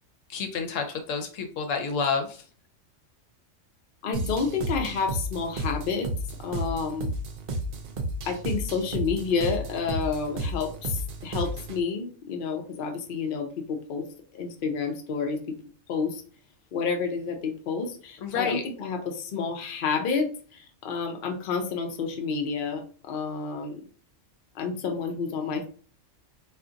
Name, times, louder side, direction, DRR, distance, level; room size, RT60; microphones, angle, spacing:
voice 1, 0.3-2.4 18.2-18.6, left 5 dB, 80° left, 5 dB, 1.0 m, -29 dB
voice 2, 4.0-6.1 6.4-7.1 8.2-14.1 14.3-15.5 15.9-16.2 16.7-23.8 24.5-25.7, left 5 dB, 55° left, 4 dB, 0.7 m, -30 dB
sound 1, 4.1-11.8, right 1 dB, 60° right, 0.7 m, -32 dB
2.5 x 2.4 x 3.8 m, 0.41 s
omnidirectional pair, 1.3 m